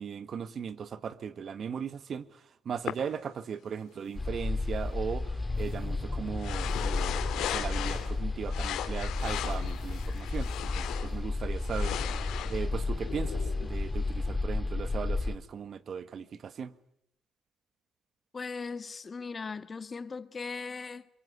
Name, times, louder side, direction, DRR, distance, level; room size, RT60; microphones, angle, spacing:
voice 1, 0.0-2.2 2.6-12.0 12.5-16.7, right 7 dB, 55° right, 1.6 m, -38 dB
sound 1, 2.9-3.0 6.4-8.2 8.5-11.1 11.6-13.8, left 11 dB, 80° left, 3.3 m, -37 dB
sound 2, 3.6-4.4 4.7-5.0 5.5-6.0 6.6-7.2 7.7-8.3 9.1-11.4, right 7 dB, 90° right, 7.6 m, -60 dB
sound 3, 4.2-15.4, left 3 dB, 20° left, 2.2 m, -32 dB
voice 2, 18.3-21.1, left 4 dB, 35° left, 1.6 m, -38 dB
24.0 x 23.0 x 9.8 m
supercardioid pair, 65°, 0 cm